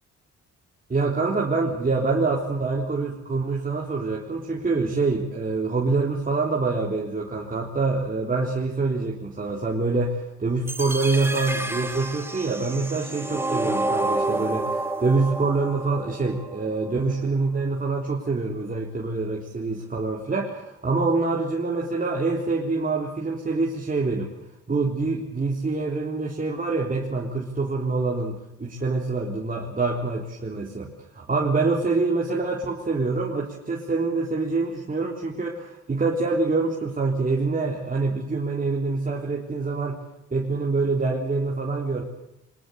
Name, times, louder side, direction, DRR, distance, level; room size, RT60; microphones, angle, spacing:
voice 1, 0.9-24.3 24.7-30.9 31.1-40.0 40.3-42.0, right 3 dB, 30° right, -2 dB, 3.7 m, -25 dB
sound 1, 10.7-16.7, right 2 dB, 10° right, 2.5 m, -29 dB
23.5 x 21.0 x 8.1 m, 0.85 s
cardioid pair, 90°, 30 cm